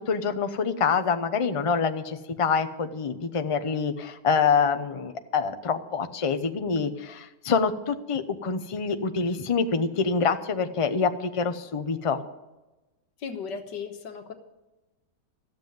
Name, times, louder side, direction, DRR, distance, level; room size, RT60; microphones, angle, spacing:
voice 1, 0.0-12.2, left 5 dB, 35° left, 8 dB, 0.5 m, -26 dB
voice 2, 13.2-14.3, left 5 dB, 90° left, 6 dB, 1.9 m, -36 dB
14.0 x 7.4 x 9.2 m, 1.0 s
omnidirectional pair, 1.8 m